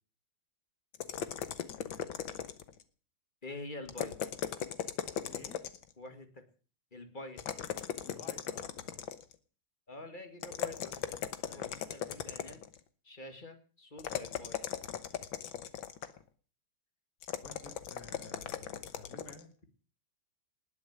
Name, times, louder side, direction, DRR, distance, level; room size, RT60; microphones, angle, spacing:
sound 1, 0.9-2.8 3.9-5.9 7.4-9.4 10.4-12.8 14.0-16.2 17.2-19.4, left 9 dB, 70° left, 1.9 m, -38 dB
voice 1, 1.7-2.1 5.2-5.6 8.0-9.1 11.4-11.9 17.4-19.5, left 3 dB, 50° left, 5 dB, 3.5 m, -53 dB
voice 2, 3.4-4.2 6.0-6.4 6.9-7.4 9.9-11.1 11.5-12.6 13.0-14.6, left 2 dB, 25° left, 7 dB, 2.2 m, -46 dB
20.0 x 7.2 x 9.5 m, 0.42 s
omnidirectional pair, 2.2 m